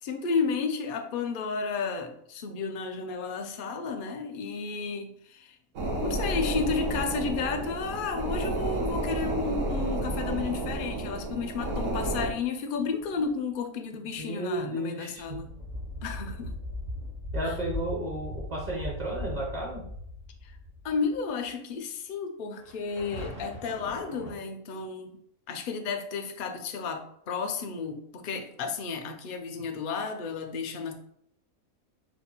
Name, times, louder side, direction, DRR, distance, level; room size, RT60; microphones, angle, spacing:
voice 1, 0.0-5.6 6.0-15.5 16.0-16.6 17.4-17.5 20.4-20.6 20.8-30.9, left 5 dB, 65° left, 5 dB, 0.5 m, -32 dB
sound 1, 5.8-12.3, right 1 dB, 70° right, 1.3 m, -31 dB
sound 2, 11.2-12.4 12.7-13.3 13.9-14.2 14.5-14.7 15.1-21.2 21.4-21.5 22.6-24.3, left 1 dB, 50° right, 1.3 m, -39 dB
voice 2, 14.2-15.2 17.3-19.8, right 1 dB, 35° right, -1 dB, 0.8 m, -33 dB
4.1 x 2.3 x 4.3 m, 0.70 s
omnidirectional pair, 1.5 m